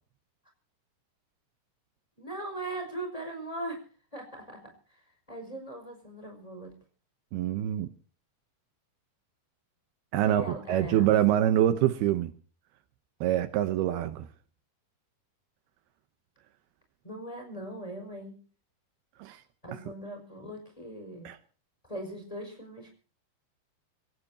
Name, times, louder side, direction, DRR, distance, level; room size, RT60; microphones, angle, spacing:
voice 1, 2.2-3.8 4.1-5.0 5.3-6.7 10.3-11.4 17.0-18.4 19.6-21.3 21.9-22.9, right 1 dB, 10° left, 5.1 m, -40 dB
voice 2, 7.3-7.9 10.1-12.3 13.2-14.3 19.2-19.4 21.2-21.4, right 12 dB, 75° right, 2.8 m, -25 dB
26.0 x 17.5 x 2.9 m
omnidirectional pair, 4.7 m